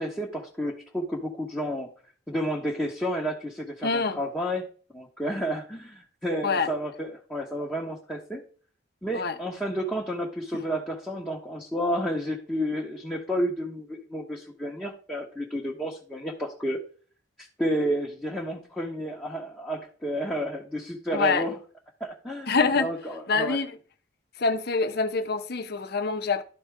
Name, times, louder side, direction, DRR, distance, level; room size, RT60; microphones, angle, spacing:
voice 1, 0.0-1.9 2.3-4.7 4.9-8.4 9.0-16.8 17.6-21.6 22.0-23.6, equal, 5° left, 1.1 m, -31 dB
voice 2, 3.8-4.2 6.4-6.7 9.1-9.4 21.1-21.4 22.5-22.9 23.3-23.7 24.4-26.4, left 4 dB, 60° left, 0.8 m, -25 dB
12.5 x 4.4 x 3.4 m
head